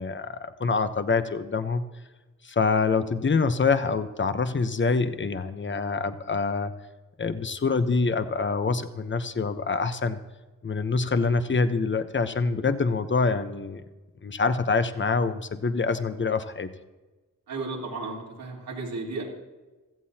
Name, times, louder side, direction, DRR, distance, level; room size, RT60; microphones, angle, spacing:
voice 1, 0.0-1.8 2.4-6.7 7.2-10.2 10.6-13.8 14.2-16.7, left 4 dB, 35° left, 10 dB, 0.9 m, -25 dB
voice 2, 17.5-19.2, right 3 dB, 90° right, -3 dB, 3.8 m, -34 dB
16.5 x 14.5 x 2.9 m, 1.2 s
wide cardioid pair, 90°, 34 cm